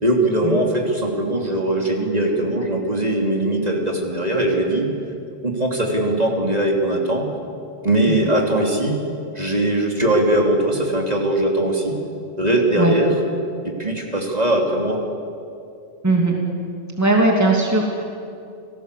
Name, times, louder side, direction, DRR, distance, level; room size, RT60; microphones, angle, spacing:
voice 1, 0.0-4.9 5.4-7.3 7.8-9.0 9.3-12.0 12.4-13.1 13.6-15.0, right 1 dB, 35° right, 0 dB, 3.2 m, -20 dB
voice 2, 17.0-18.0, right 2 dB, 15° right, 0 dB, 2.8 m, -18 dB
29.0 x 18.5 x 8.4 m, 2.5 s
omnidirectional pair, 1.2 m